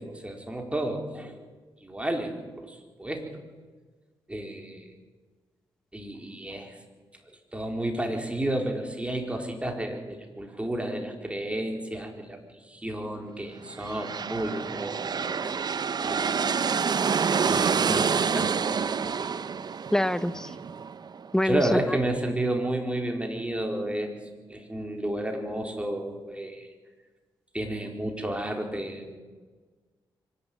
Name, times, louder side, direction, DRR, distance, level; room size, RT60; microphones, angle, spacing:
voice 1, 0.0-1.3 1.8-3.3 4.3-4.8 5.9-6.7 7.5-12.4 12.7-15.7 16.0-16.5 17.5-19.2 21.4-24.1 24.5-26.7 27.5-29.2, right 1 dB, 15° right, 3 dB, 4.4 m, -32 dB
sound 1, 13.7-21.4, right 6 dB, 50° right, 0.9 m, -27 dB
voice 2, 19.9-20.5 21.3-22.0, left 1 dB, 5° left, 14 dB, 1.0 m, -25 dB
24.5 x 11.5 x 9.1 m, 1.4 s
cardioid pair, 60°, 9 cm